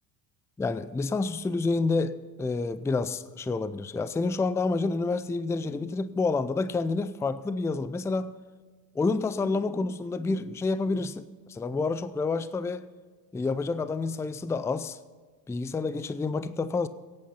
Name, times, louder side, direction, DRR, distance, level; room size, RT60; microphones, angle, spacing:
voice 1, 0.6-8.3 9.0-12.9 13.3-15.0 15.5-16.9, left 3 dB, 5° left, 0.4 m, -29 dB
17.0 x 8.6 x 5.6 m
supercardioid pair, 85°, 47 cm